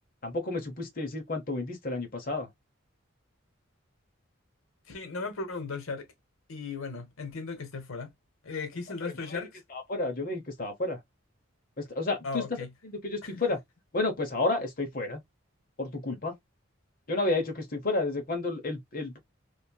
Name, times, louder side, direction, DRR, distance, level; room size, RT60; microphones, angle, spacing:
voice 1, 0.2-2.5 9.3-11.0 11.8-13.6 13.9-15.2 15.8-16.3 17.1-19.2, left 2 dB, 45° left, 0.8 m, -31 dB
voice 2, 4.9-6.1 6.5-8.1 8.4-9.6 12.2-12.7 13.2-13.4, left 4 dB, 85° left, 0.9 m, -36 dB
3.1 x 2.7 x 2.2 m
head